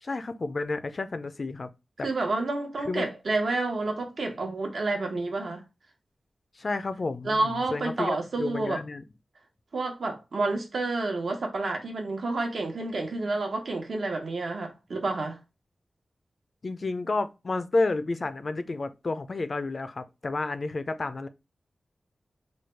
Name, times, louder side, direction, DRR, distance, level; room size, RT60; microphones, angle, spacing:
voice 1, 0.0-1.7 2.0-2.1 2.8-3.1 6.6-9.0 16.6-21.3, left 3 dB, 45° left, 0.4 m, -31 dB
voice 2, 2.0-5.6 7.2-8.8 9.7-15.4, right 2 dB, 70° right, 1.0 m, -29 dB
3.2 x 2.3 x 4.3 m
wide cardioid pair, 115°, 0 cm